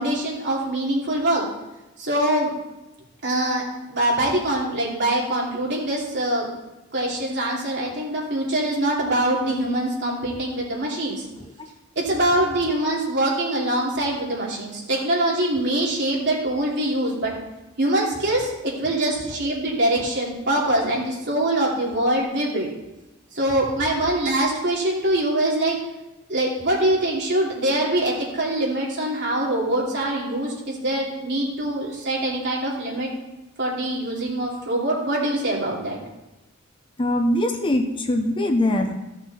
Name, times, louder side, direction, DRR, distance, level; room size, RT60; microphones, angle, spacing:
voice 1, 0.0-1.4 2.0-2.5 3.2-3.6 3.9-6.5 6.9-11.3 11.9-17.3 17.8-22.7 23.3-25.8 26.3-33.1 33.6-36.0, right 1 dB, 55° right, -4 dB, 2.9 m, -23 dB
voice 2, 37.0-38.9, left 1 dB, 25° left, 4 dB, 0.7 m, -22 dB
15.0 x 6.2 x 4.2 m, 1.0 s
head